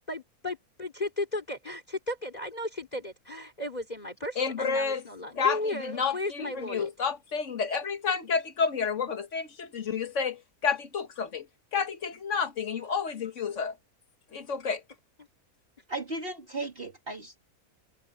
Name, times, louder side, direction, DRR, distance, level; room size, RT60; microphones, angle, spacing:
voice 1, 0.1-6.9, left 1 dB, 25° left, 3.0 m, -35 dB
voice 2, 4.4-5.0 5.4-11.4 11.7-13.7 14.3-14.8, left 6 dB, 55° left, 1.7 m, -30 dB
voice 3, 15.9-17.4, right 2 dB, 40° right, 2.6 m, -36 dB
omnidirectional pair, 1.5 m